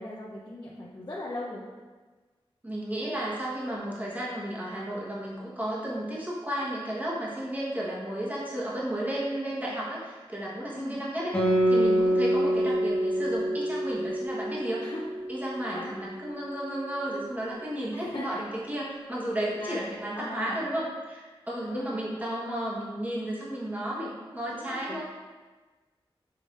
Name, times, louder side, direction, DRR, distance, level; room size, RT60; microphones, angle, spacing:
voice 1, 0.0-1.6 10.8-11.0 12.2-12.3 14.8-15.0 15.7-15.9 17.9-18.4 19.6-20.6 21.7-22.0 24.5-25.0, left 1 dB, 40° left, -6 dB, 0.7 m, -39 dB
voice 2, 2.6-11.3 11.7-14.8 15.3-25.0, right 1 dB, 15° right, -6 dB, 1.2 m, -33 dB
Guitar, 11.3-16.3, right 1 dB, 15° left, 1.3 m, -26 dB
5.5 x 3.4 x 2.5 m, 1.3 s
cardioid pair, 55°, 10 cm